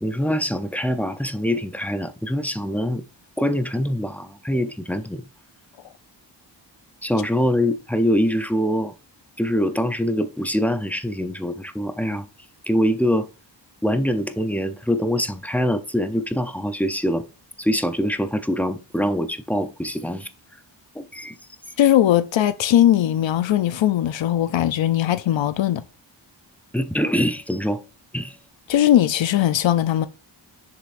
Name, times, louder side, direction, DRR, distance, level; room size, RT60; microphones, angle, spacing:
voice 1, 0.0-3.0 3.4-5.2 7.0-8.9 9.4-12.3 12.7-13.3 13.8-17.2 17.6-20.3 20.9-21.4 26.7-27.8 28.1-28.4, equal, 5° left, 0.5 m, -24 dB
voice 2, 21.8-25.8 28.7-30.1, left 12 dB, 85° left, 0.6 m, -19 dB
7.7 x 6.8 x 2.5 m
wide cardioid pair, 130°, 44 cm